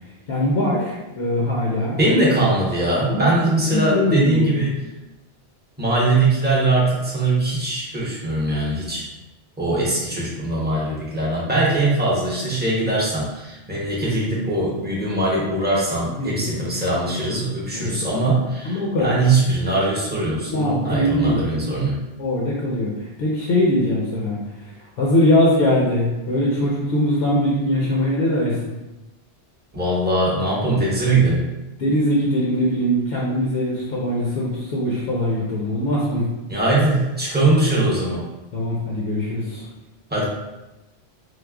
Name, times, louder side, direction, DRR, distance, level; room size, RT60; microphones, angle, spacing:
voice 1, 0.3-2.0 3.1-3.3 3.7-4.5 16.2-16.5 17.7-18.0 18.6-19.2 20.5-21.7 22.2-28.8 31.8-36.3 38.5-39.6, left 1 dB, 65° left, -4 dB, 0.8 m, -21 dB
voice 2, 2.0-4.8 5.8-9.1 9.6-22.0 29.7-31.5 36.5-38.2 40.1-40.3, right 2 dB, 10° right, -6 dB, 0.6 m, -21 dB
4.7 x 2.0 x 2.3 m, 1.0 s
omnidirectional pair, 1.1 m